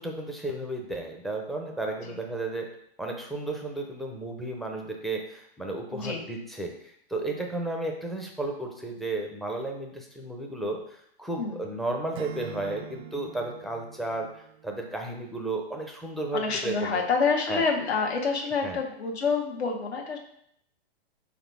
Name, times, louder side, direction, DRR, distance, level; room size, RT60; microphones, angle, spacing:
voice 1, 0.0-2.7 3.0-17.0 17.5-17.6 18.6-18.8, right 2 dB, ahead, 1 dB, 0.4 m, -33 dB
voice 2, 5.9-6.3 11.4-11.6 16.3-20.2, left 5 dB, 85° left, 1 dB, 1.2 m, -27 dB
Acoustic guitar / Strum, 12.1-15.2, right 10 dB, 80° right, 0.5 m, -44 dB
4.3 x 4.1 x 5.4 m, 0.70 s
hypercardioid pair, 135°, 32 cm